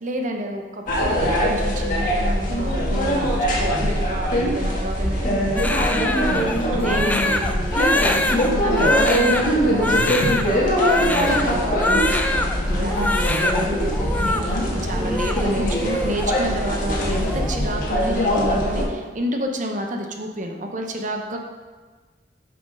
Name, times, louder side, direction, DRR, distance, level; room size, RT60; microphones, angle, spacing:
voice 1, 0.0-5.7 6.7-7.8 8.4-21.4, right 1 dB, 45° right, 3 dB, 0.8 m, -30 dB
sound 1, 0.9-18.8, equal, 50° left, 1.7 m, -22 dB
voice 2, 5.2-7.1 7.4-8.8 15.0-15.3, equal, 30° left, -2 dB, 1.4 m, -29 dB
Crying sobbing, 5.6-12.6 12.9-13.6 13.9-14.4 14.9-16.3 16.5-16.8 17.1-17.6, left 1 dB, 10° left, 0.4 m, -24 dB
7.1 x 5.9 x 5.2 m, 1.4 s
head